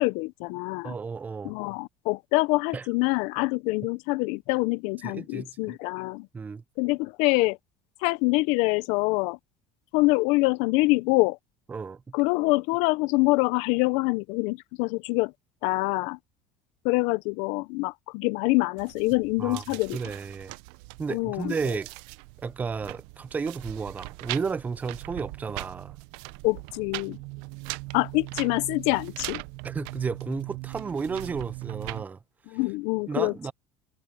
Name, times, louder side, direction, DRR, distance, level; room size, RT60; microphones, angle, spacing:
voice 1, 0.0-0.9 1.4-6.3 6.8-7.6 8.0-9.4 9.9-11.4 12.1-15.3 15.6-16.2 16.8-20.0 21.1-21.5 26.4-27.2 27.9-29.4 32.5-33.5, left 24 dB, 75° left, 0.5 m, -25 dB
voice 2, 0.8-1.5 2.7-2.9 5.0-5.8 6.3-6.6 11.7-12.0 19.4-19.6 19.9-20.6 21.0-21.9 22.4-26.0 29.6-32.2 32.5-32.6 33.1-33.5, right 5 dB, 15° right, 0.4 m, -33 dB
sound 1, 18.8-32.0, right 25 dB, 80° right, 0.5 m, -40 dB
cardioid pair, 150°, 11 cm